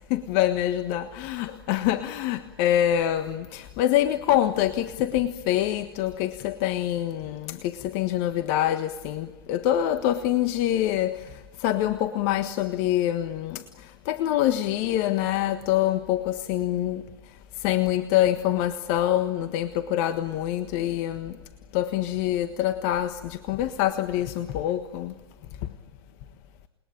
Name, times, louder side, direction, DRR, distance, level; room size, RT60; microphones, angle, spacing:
voice 1, 0.1-11.3 11.6-13.6 14.0-17.0 17.6-21.3 21.7-25.1, left 12 dB, 45° left, 1.5 m, -25 dB
29.0 x 21.0 x 8.6 m
hypercardioid pair, 110°, 12 cm